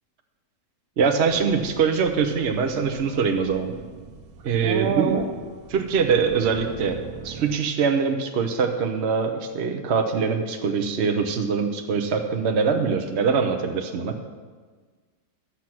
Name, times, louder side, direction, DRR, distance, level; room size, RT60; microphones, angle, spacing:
voice 1, 1.0-3.7 4.4-5.2 5.7-14.2, right 5 dB, 50° right, 5 dB, 1.0 m, -23 dB
sound 1, 1.3-7.6, right 6 dB, 80° right, 1.4 m, -33 dB
12.0 x 7.9 x 6.0 m, 1.5 s
omnidirectional pair, 1.6 m